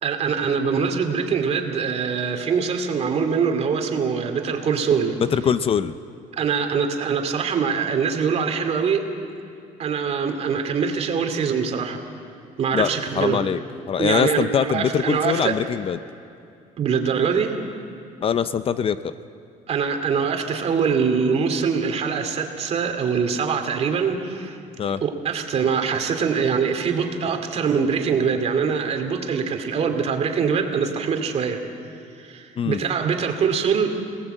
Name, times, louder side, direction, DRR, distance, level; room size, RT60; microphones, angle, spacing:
voice 1, 0.0-5.1 6.4-9.1 9.8-12.0 12.6-13.4 14.0-15.5 16.8-17.7 19.7-24.6 25.0-31.6 32.2-33.9, right 6 dB, 45° right, 5 dB, 2.6 m, -23 dB
voice 2, 5.2-5.9 12.7-12.9 13.1-13.6 13.9-16.0 18.2-19.1 24.8-25.0 32.6-32.8, left 7 dB, 40° left, 13 dB, 0.6 m, -22 dB
27.0 x 18.0 x 8.0 m, 2.4 s
cardioid pair, 120°, 15 cm